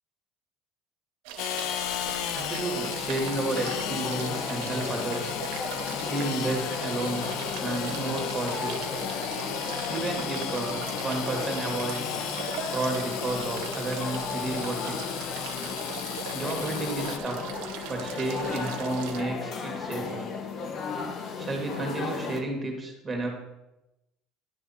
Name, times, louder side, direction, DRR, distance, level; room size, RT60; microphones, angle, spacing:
sound 1, 1.2-19.2, right 8 dB, 80° right, 0.7 m, -40 dB
Engine / Sawing, 1.4-17.2, left 11 dB, 70° left, 0.4 m, -34 dB
voice 1, 2.3-5.3 6.1-7.2 7.6-8.9 9.9-12.2 12.7-15.0 16.3-17.4 17.9-20.2 21.4-23.3, right 2 dB, 20° right, 1 dB, 2.1 m, -32 dB
sound 2, 2.7-22.4, left 5 dB, 45° left, 0.9 m, -36 dB
9.8 x 3.5 x 5.6 m, 0.95 s
supercardioid pair, 110°, 0 cm